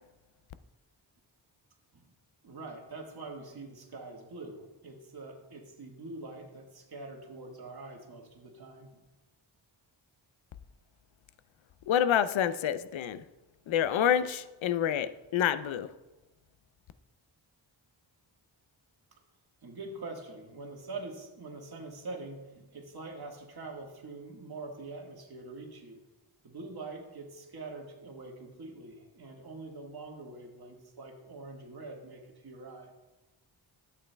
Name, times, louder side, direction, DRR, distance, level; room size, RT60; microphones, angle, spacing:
voice 1, 2.4-9.0 19.6-26.0 26.4-32.9, right 3 dB, 50° right, 1 dB, 1.5 m, -44 dB
voice 2, 11.9-13.2 13.7-15.9, left 9 dB, 75° left, 13 dB, 0.6 m, -28 dB
12.5 x 8.3 x 2.2 m, 1.1 s
wide cardioid pair, 90°, 47 cm